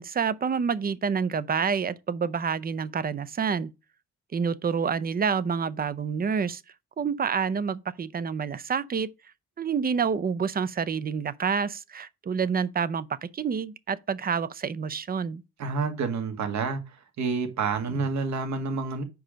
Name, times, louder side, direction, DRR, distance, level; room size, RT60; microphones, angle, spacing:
voice 1, 0.0-3.7 4.3-6.6 7.0-9.1 9.6-15.4, right 6 dB, 30° right, 0.6 m, -28 dB
voice 2, 15.6-16.8 17.2-19.0, right 4 dB, 65° right, 1.8 m, -28 dB
5.1 x 4.8 x 6.2 m
cardioid pair, 90°, 30 cm